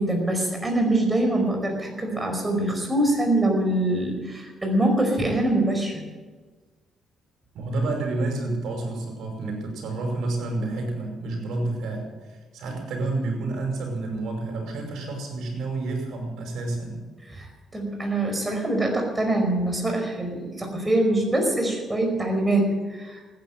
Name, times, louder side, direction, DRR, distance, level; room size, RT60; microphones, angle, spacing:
voice 1, 0.0-6.0 17.4-17.5 17.7-23.2, right 1 dB, 15° right, 3 dB, 5.1 m, -24 dB
voice 2, 7.5-17.0, right 2 dB, 80° right, 2 dB, 5.7 m, -29 dB
15.0 x 10.5 x 9.1 m, 1.3 s
cardioid pair, 90°, 0 cm